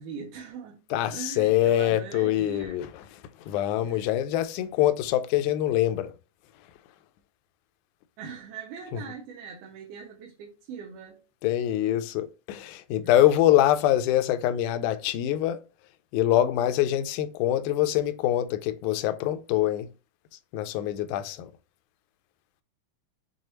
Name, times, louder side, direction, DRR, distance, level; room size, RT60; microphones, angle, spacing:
voice 1, 0.0-0.8 1.1-2.8 3.8-4.1 8.2-11.2 13.0-13.1, right 6 dB, 85° right, 2.3 m, -41 dB
voice 2, 0.9-6.1 6.6-6.7 8.9-9.0 11.4-15.6 16.1-19.9 20.5-21.5, left 12 dB, 80° left, 1.8 m, -24 dB
6.4 x 2.3 x 3.0 m
omnidirectional pair, 3.8 m